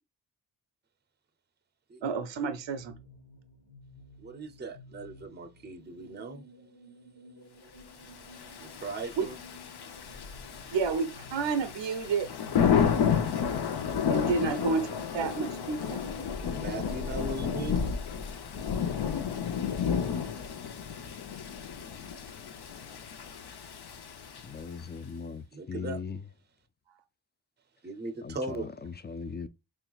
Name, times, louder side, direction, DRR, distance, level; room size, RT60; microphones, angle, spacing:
voice 1, 2.0-2.9 9.2-9.3 10.7-12.3 14.1-16.0, right 5 dB, 85° right, 0.7 m, -30 dB
sound 1, 2.3-16.4, left 1 dB, 80° left, 1.4 m, -53 dB
voice 2, 4.2-6.4 8.6-9.4 16.4-17.8 25.5-26.0 27.8-28.7, right 3 dB, 25° right, 0.6 m, -38 dB
Thunder / Rain, 8.2-24.8, left 7 dB, 65° left, 0.7 m, -31 dB
voice 3, 24.4-26.2 28.2-29.5, left 5 dB, 25° left, 0.4 m, -39 dB
4.6 x 3.2 x 2.3 m
cardioid pair, 60°, 43 cm